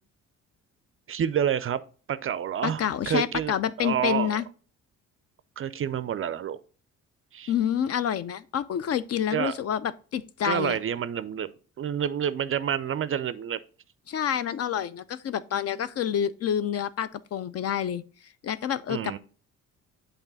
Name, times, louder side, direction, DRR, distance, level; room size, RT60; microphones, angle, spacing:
voice 1, 1.1-1.8 2.1-4.4 5.6-6.6 7.3-7.5 9.3-9.5 10.4-11.5 11.8-13.6 18.9-19.2, right 9 dB, 35° right, 0.4 m, -28 dB
voice 2, 2.6-4.4 7.5-10.8 14.1-18.0 18.4-19.2, left 9 dB, 40° left, 0.4 m, -28 dB
8.0 x 3.4 x 3.9 m
hypercardioid pair, 45°, 40 cm